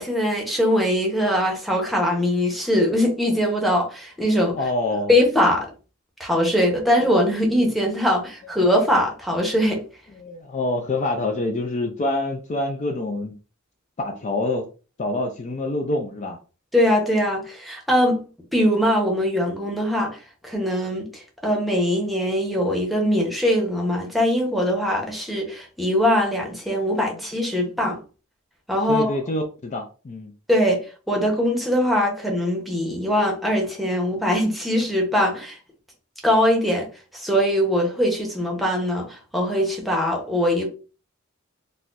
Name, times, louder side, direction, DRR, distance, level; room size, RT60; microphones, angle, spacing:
voice 1, 0.0-4.6 5.1-5.7 6.2-9.8 16.7-18.2 18.5-20.2 20.4-28.0 28.7-29.1 30.5-35.6 36.2-36.9 37.1-40.7, equal, ahead, 0.9 m, -21 dB
voice 2, 4.6-5.1 10.1-13.4 14.0-14.7 15.0-16.4 27.1-27.2 28.9-30.3, left 2 dB, 35° left, 0.4 m, -26 dB
4.1 x 2.2 x 2.5 m
head